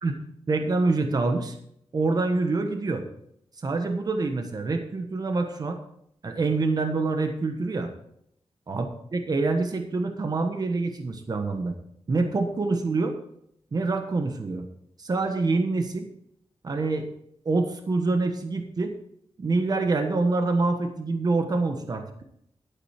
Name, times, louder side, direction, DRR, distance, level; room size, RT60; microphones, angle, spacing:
voice 1, 0.5-1.6 1.9-3.0 3.6-5.8 6.2-7.9 8.7-8.9 9.1-11.8 12.1-13.2 13.7-14.6 15.0-16.1 16.6-17.1 17.4-18.9 19.4-22.2, right 3 dB, 40° right, 6 dB, 1.2 m, -26 dB
12.0 x 9.2 x 4.4 m, 0.72 s
wide cardioid pair, 160°, 10 cm